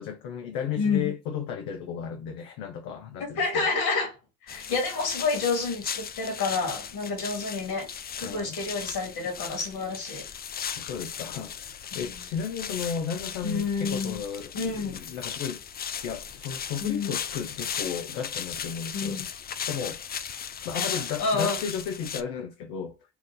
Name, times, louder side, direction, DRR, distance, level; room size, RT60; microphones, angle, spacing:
voice 1, 0.0-3.7 4.5-4.6 8.2-8.6 10.8-15.6 16.0-20.0 20.6-23.0, left 7 dB, 75° left, 0.8 m, -34 dB
voice 2, 0.8-1.1 3.2-4.2 4.4-7.9 8.2-10.3 11.9-12.2 13.4-14.2 14.5-15.0 16.8-17.1 18.9-19.3 20.7-21.6, left 4 dB, 55° left, 2.4 m, -29 dB
sound 1, 4.5-22.2, left 8 dB, 25° left, 0.4 m, -37 dB
4.5 x 2.5 x 3.7 m
hypercardioid pair, 65°, 45 cm